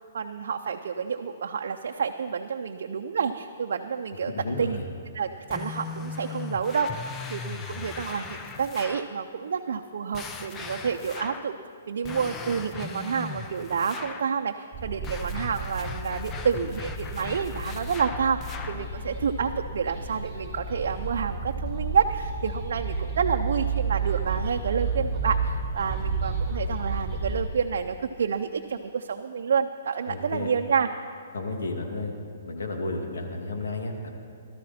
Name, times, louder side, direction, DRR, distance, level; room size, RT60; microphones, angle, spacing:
voice 1, 0.1-4.3 4.6-4.8 5.1-7.0 7.3-11.5 11.9-30.9, right 6 dB, 70° right, 4 dB, 0.5 m, -29 dB
voice 2, 4.3-4.8 30.1-30.5 31.3-32.1 32.5-34.1, left 2 dB, 85° left, 2 dB, 2.1 m, -32 dB
sound 1, 5.5-9.2 10.1-11.6 12.0-14.3 15.0-18.9, left 5 dB, 20° left, 0.6 m, -38 dB
sound 2, 14.7-27.4, right 4 dB, ahead, 4.3 m, -31 dB
17.5 x 13.0 x 4.3 m, 2.4 s
hypercardioid pair, 155°, 0 cm